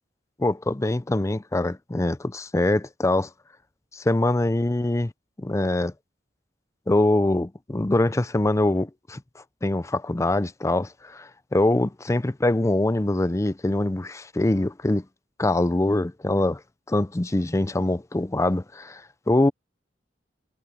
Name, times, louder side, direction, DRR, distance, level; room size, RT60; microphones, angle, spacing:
voice 1, 0.4-3.3 3.9-5.1 5.4-5.9 6.9-15.0 15.4-16.6 16.9-19.5, left 2 dB, 15° left, 0.5 m, -24 dB
head